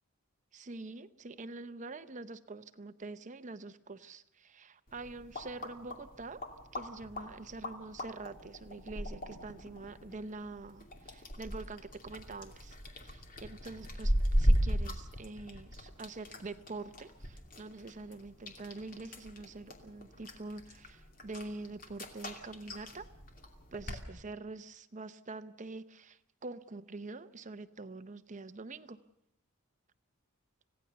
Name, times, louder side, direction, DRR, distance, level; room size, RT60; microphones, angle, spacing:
voice 1, 0.5-6.4 6.7-23.1 23.7-29.0, right 3 dB, 35° right, 11 dB, 0.8 m, -45 dB
sound 1, 4.9-24.0, equal, 40° left, 2.6 m, -37 dB
26.0 x 16.5 x 6.9 m, 0.78 s
head